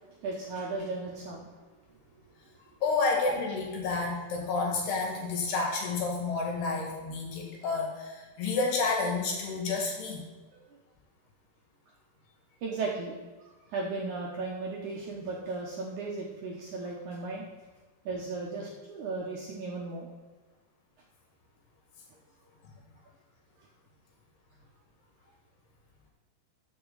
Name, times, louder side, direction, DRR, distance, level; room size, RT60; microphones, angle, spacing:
voice 1, 0.2-1.6 2.6-2.7 12.6-13.1 13.4-17.4 18.1-20.1 23.6-23.7, right 3 dB, 70° right, -2 dB, 1.9 m, -36 dB
voice 2, 2.8-10.2 22.6-22.7, left 4 dB, 75° left, 0 dB, 3.9 m, -30 dB
15.0 x 6.9 x 4.0 m, 1.3 s
omnidirectional pair, 4.8 m